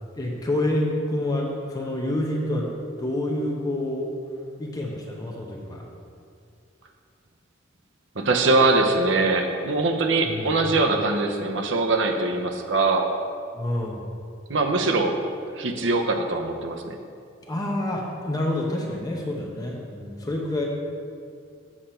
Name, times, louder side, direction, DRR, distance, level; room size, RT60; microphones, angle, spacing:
voice 1, 0.2-2.7 3.0-4.1 4.6-5.8 10.2-10.5 13.5-14.1 17.5-20.6, left 1 dB, 20° left, -1 dB, 0.9 m, -28 dB
voice 2, 8.2-13.1 14.5-15.2 15.6-17.0, right 3 dB, 65° right, 3 dB, 0.8 m, -22 dB
7.4 x 6.6 x 4.4 m, 2.3 s
head